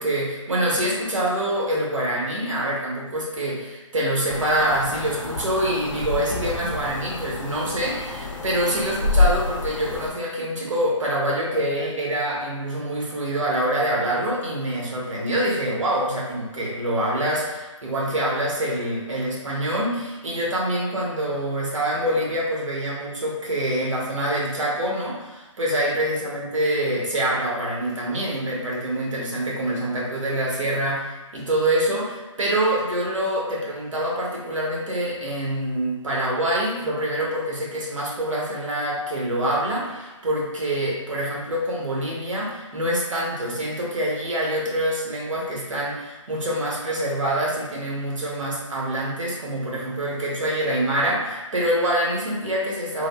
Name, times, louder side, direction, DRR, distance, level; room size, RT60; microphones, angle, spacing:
voice 1, 0.0-53.1, right 1 dB, 75° right, -4 dB, 1.0 m, -25 dB
sound 1, 4.3-10.1, left 3 dB, 85° left, 0.5 m, -27 dB
3.2 x 2.1 x 2.2 m, 1.1 s
hypercardioid pair, 165°, 16 cm